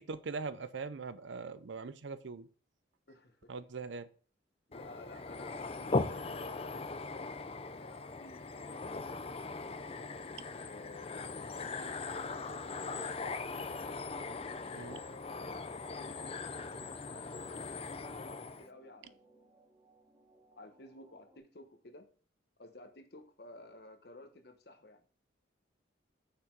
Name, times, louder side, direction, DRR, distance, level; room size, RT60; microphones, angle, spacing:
voice 1, 0.0-2.5 3.5-4.1 10.4-10.5 14.7-15.0, right 4 dB, 75° right, 0.6 m, -41 dB
voice 2, 3.1-3.5 4.7-7.4 7.7-9.2 10.6-13.6 14.4-19.6 20.5-22.1 22.6-25.0, left 2 dB, 55° left, 1.1 m, -54 dB
sound 1, 4.7-18.7, left 3 dB, 30° left, 0.5 m, -39 dB
sound 2, 15.7-21.4, right 1 dB, 15° right, 1.6 m, -65 dB
6.7 x 5.8 x 4.6 m
head